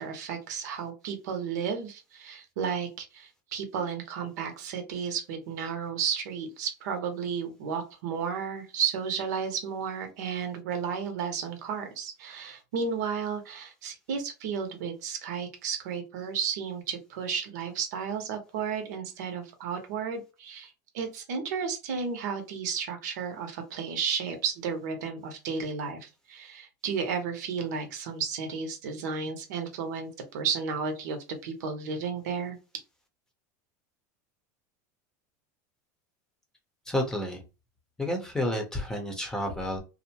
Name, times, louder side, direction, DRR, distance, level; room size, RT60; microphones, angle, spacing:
voice 1, 0.0-32.6, right 6 dB, 80° right, 5 dB, 0.8 m, -33 dB
voice 2, 36.9-37.4 38.0-39.8, left 1 dB, 5° left, 2 dB, 0.7 m, -30 dB
2.6 x 2.1 x 2.8 m, 0.30 s
supercardioid pair, 135°, 9 cm